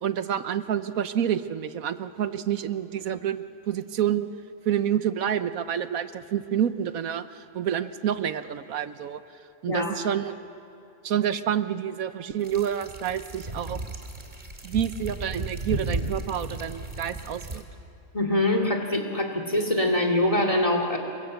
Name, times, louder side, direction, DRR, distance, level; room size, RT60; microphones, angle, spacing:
voice 1, 0.0-4.3 4.7-9.2 9.6-10.4 11.0-13.8 14.6-17.6, right 9 dB, 85° right, 11 dB, 1.3 m, -28 dB
voice 2, 9.6-10.0 18.1-21.0, left 1 dB, 25° left, 4 dB, 2.7 m, -24 dB
sound 1, 12.4-17.6, right 2 dB, 35° right, 2.5 m, -34 dB
28.0 x 22.5 x 7.9 m, 2.7 s
omnidirectional pair, 1.5 m